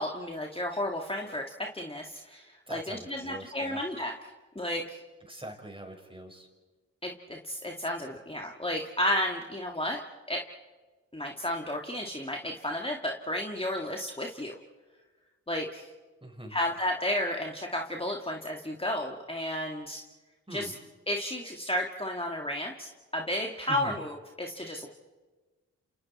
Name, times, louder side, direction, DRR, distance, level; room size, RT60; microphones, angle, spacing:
voice 1, 0.0-4.1 4.6-5.0 7.0-10.0 10.3-10.4 11.1-14.6 15.5-15.9 16.5-20.0 20.5-20.7 21.1-24.9, left 1 dB, 20° left, 1 dB, 2.2 m, -32 dB
voice 2, 2.7-3.8 5.3-6.5 16.2-16.6 20.5-20.7 23.7-24.0, right 1 dB, 15° right, 3 dB, 5.6 m, -43 dB
29.0 x 27.5 x 4.4 m, 1.3 s
supercardioid pair, 40°, 31 cm